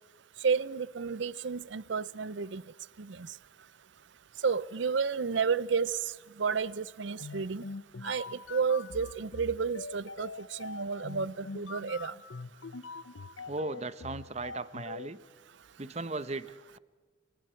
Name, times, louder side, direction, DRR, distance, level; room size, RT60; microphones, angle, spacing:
voice 1, 0.4-2.6 4.4-6.0 6.4-7.6 8.0-8.2 8.5-10.3 10.6-12.1, right 5 dB, 65° right, 0.6 m, -31 dB
sound 1, 7.2-15.1, left 4 dB, 80° left, 0.8 m, -43 dB
voice 2, 13.5-15.2 15.8-16.8, right 3 dB, 35° right, 0.9 m, -37 dB
28.5 x 24.0 x 4.5 m
head